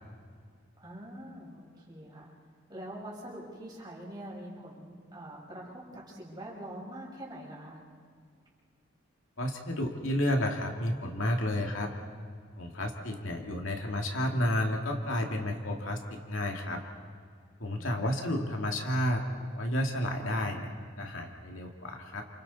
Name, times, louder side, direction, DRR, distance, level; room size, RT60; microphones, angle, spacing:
voice 1, 0.8-2.3 2.7-7.8 17.7-18.2, right 1 dB, 20° right, -4 dB, 5.8 m, -44 dB
voice 2, 9.4-11.9 12.6-16.8 17.6-19.2 19.5-20.7 21.0-22.2, left 1 dB, 75° left, 2 dB, 2.4 m, -31 dB
30.0 x 28.0 x 4.2 m, 2.2 s
head